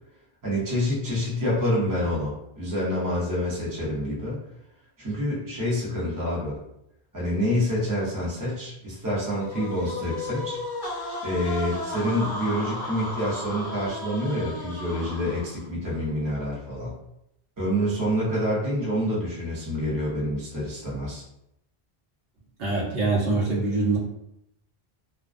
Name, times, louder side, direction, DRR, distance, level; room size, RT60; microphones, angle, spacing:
voice 1, 0.4-4.4 5.0-6.6 7.1-10.6 11.2-16.9 17.6-21.2, equal, 20° right, -6 dB, 0.7 m, -27 dB
sound 1, 9.3-15.7, left 2 dB, 30° left, 0.5 m, -34 dB
voice 2, 22.6-24.0, right 3 dB, 75° right, -5 dB, 0.9 m, -24 dB
2.3 x 2.1 x 2.4 m, 0.80 s
omnidirectional pair, 1.0 m